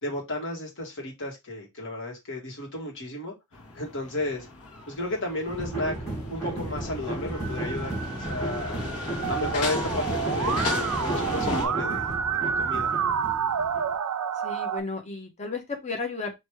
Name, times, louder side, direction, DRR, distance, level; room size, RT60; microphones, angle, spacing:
voice 1, 0.0-3.3 3.8-4.5 4.9-6.0 6.3-8.8 9.3-12.1 12.3-12.9, left 1 dB, 60° left, 2.0 m, -33 dB
sound 1, 3.5-11.7, left 3 dB, 80° left, 1.4 m, -35 dB
sound 2, 5.5-13.9, right 1 dB, 15° left, 3.3 m, -34 dB
Musical instrument, 9.2-14.8, right 7 dB, 75° right, 0.5 m, -28 dB
voice 2, 14.4-16.3, left 3 dB, 30° left, 1.2 m, -33 dB
5.3 x 2.9 x 3.2 m
head